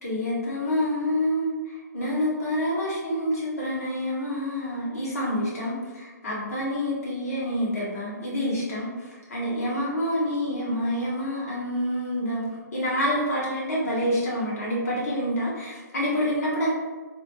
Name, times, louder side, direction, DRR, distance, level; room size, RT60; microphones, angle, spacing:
voice 1, 0.0-16.7, equal, 55° left, -6 dB, 1.3 m, -27 dB
3.1 x 2.2 x 2.9 m, 1.3 s
figure-of-eight pair, 130°, 10 cm